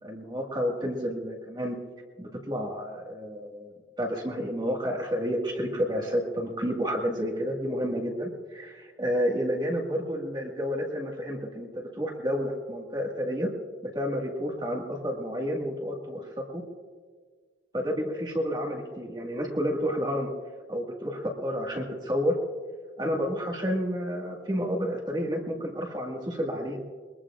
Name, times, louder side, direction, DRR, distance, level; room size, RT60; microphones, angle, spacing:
voice 1, 0.0-1.8 2.2-3.7 4.0-13.5 13.9-16.6 17.7-20.3 20.7-22.4 23.0-26.8, equal, 25° right, -1 dB, 1.8 m, -30 dB
22.0 x 22.0 x 2.5 m, 1.5 s
head